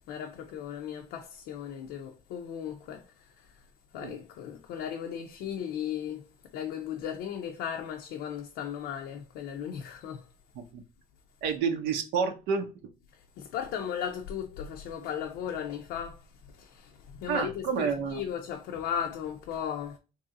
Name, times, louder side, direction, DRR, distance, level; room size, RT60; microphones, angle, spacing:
voice 1, 0.1-3.6 3.9-6.3 6.5-10.3 13.1-20.0, left 8 dB, 85° left, 0.5 m, -36 dB
voice 2, 11.4-12.7 17.3-18.2, right 6 dB, 85° right, 0.6 m, -29 dB
3.0 x 2.7 x 3.6 m
cardioid pair, 110°, 17 cm